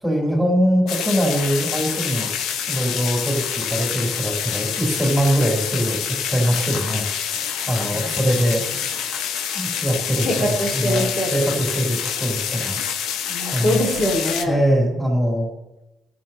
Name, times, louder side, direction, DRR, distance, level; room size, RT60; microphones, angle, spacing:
voice 1, 0.0-2.3 2.7-9.2 9.5-10.3 10.7-12.8 13.5-13.8 14.4-15.5, equal, ahead, -2 dB, 5.1 m, -22 dB
sound 1, 0.9-14.4, left 8 dB, 85° left, 0.9 m, -27 dB
voice 2, 10.2-11.3 13.3-14.6, equal, 45° left, 0 dB, 2.9 m, -23 dB
21.0 x 7.6 x 3.3 m, 0.99 s
cardioid pair, 90°, 0 cm